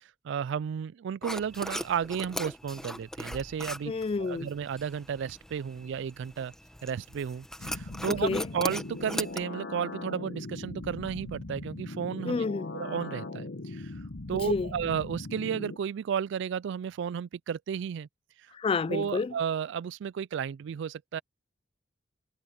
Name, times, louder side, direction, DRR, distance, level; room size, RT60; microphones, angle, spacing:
voice 1, 0.2-3.9 4.2-6.5 6.8-12.4 12.7-13.9 14.3-18.1 18.9-21.2, right 7 dB, 65° right, 0.3 m, -33 dB
sound 1, 1.2-9.4, left 1 dB, 5° left, 1.1 m, -40 dB
voice 2, 3.9-4.5 8.2-8.5 12.3-12.7 14.5-14.7 18.6-19.3, left 4 dB, 30° left, 0.3 m, -29 dB
sound 2, 7.6-15.8, left 2 dB, 65° left, 1.1 m, -40 dB
head